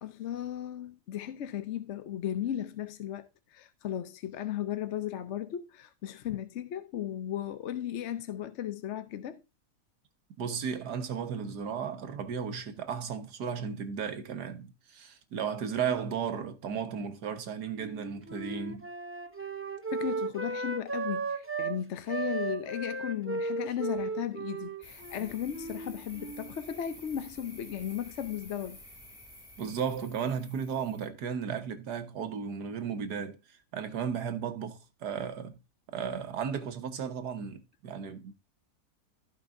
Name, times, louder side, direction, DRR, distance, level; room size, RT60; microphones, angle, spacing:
voice 1, 0.0-9.4 19.9-28.8, left 10 dB, 60° left, 0.8 m, -36 dB
voice 2, 10.4-18.9 29.6-33.4 33.7-35.6 35.9-38.3, right 7 dB, 80° right, 1.8 m, -34 dB
Wind instrument woodwind instrument, 17.8-21.8 22.1-26.6, right 4 dB, 15° right, 0.4 m, -35 dB
sound 1, 24.8-31.1, left 1 dB, 15° left, 2.6 m, -51 dB
15.5 x 5.3 x 2.6 m
omnidirectional pair, 1.7 m